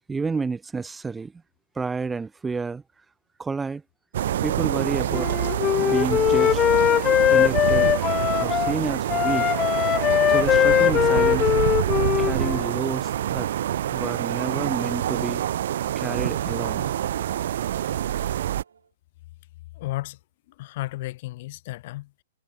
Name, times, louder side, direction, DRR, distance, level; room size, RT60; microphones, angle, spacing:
voice 1, 0.1-1.3 1.7-2.8 3.4-3.8 4.4-5.3 5.8-6.6 7.3-8.0 8.3-9.5 10.3-11.5 12.2-13.5 13.9-15.4 15.9-16.9, right 4 dB, 10° right, 5.1 m, -30 dB
sound 1, 4.1-18.6, right 11 dB, 65° right, 1.2 m, -26 dB
Wind instrument woodwind instrument, 5.1-8.7 9.1-12.7, left 10 dB, 20° left, 0.6 m, -21 dB
sound 2, 10.8-18.9, right 7 dB, 85° right, 5.8 m, -44 dB
voice 2, 19.7-20.2 20.5-22.2, left 18 dB, 50° left, 7.1 m, -33 dB
hypercardioid pair, 135°, 0 cm